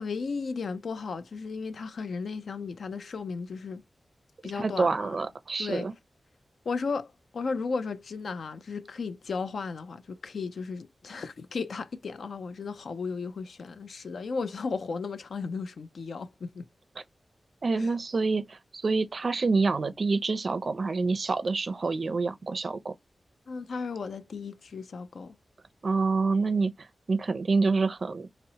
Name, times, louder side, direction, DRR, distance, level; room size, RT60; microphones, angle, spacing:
voice 1, 0.0-3.8 4.4-5.2 5.6-5.9 6.7-16.7 17.8-17.9 23.5-25.4, left 4 dB, 75° left, 0.4 m, -35 dB
voice 2, 4.6-5.9 17.6-22.9 25.8-26.7 27.1-28.3, right 4 dB, 45° right, 0.4 m, -27 dB
4.0 x 2.0 x 2.7 m
wide cardioid pair, 160°, 0 cm